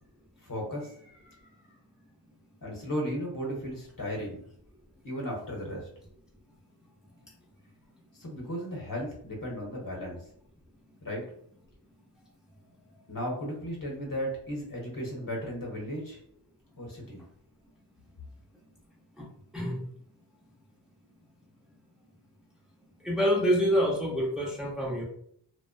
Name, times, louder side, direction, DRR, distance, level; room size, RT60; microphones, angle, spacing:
voice 1, 0.4-1.6 2.6-4.4 5.0-5.9 8.1-10.2 11.0-11.3 13.1-16.2 16.8-17.2, equal, 45° left, -2 dB, 0.9 m, -35 dB
voice 2, 23.0-25.0, equal, ahead, -4 dB, 0.8 m, -26 dB
2.5 x 2.1 x 2.4 m, 0.65 s
cardioid pair, 50°, 44 cm